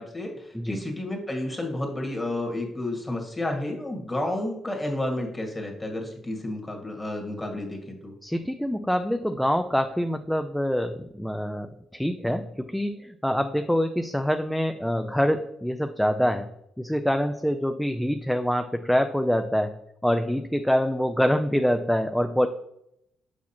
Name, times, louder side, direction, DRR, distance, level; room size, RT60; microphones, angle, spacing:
voice 1, 0.0-8.1, left 1 dB, 15° left, 1 dB, 1.7 m, -31 dB
voice 2, 8.2-11.7 11.9-16.5 16.8-19.7 20.0-22.5, equal, ahead, 6 dB, 0.4 m, -25 dB
6.3 x 5.9 x 2.9 m, 0.77 s
cardioid pair, 90°, 0 cm